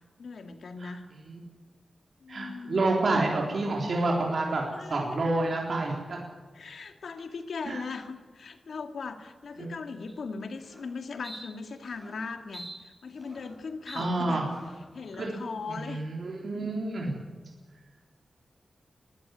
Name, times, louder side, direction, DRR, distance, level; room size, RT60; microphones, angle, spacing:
voice 1, 0.2-1.0 2.2-3.2 4.7-5.2 6.5-14.4 14.9-16.1, left 4 dB, 80° left, 6 dB, 2.1 m, -39 dB
voice 2, 2.3-4.6 4.9-6.2 7.7-7.8 9.6-9.7 13.9-14.4 15.1-15.3 15.7-17.2, right 2 dB, 55° right, -1 dB, 3.8 m, -29 dB
sound 1, 10.1-10.2 10.6-10.8 11.2-11.4 11.9-12.2 12.5-13.6 13.9-14.0 14.5-14.8, right 1 dB, 5° right, 7.8 m, -45 dB
21.5 x 15.5 x 9.4 m, 1.4 s
wide cardioid pair, 170°, 0 cm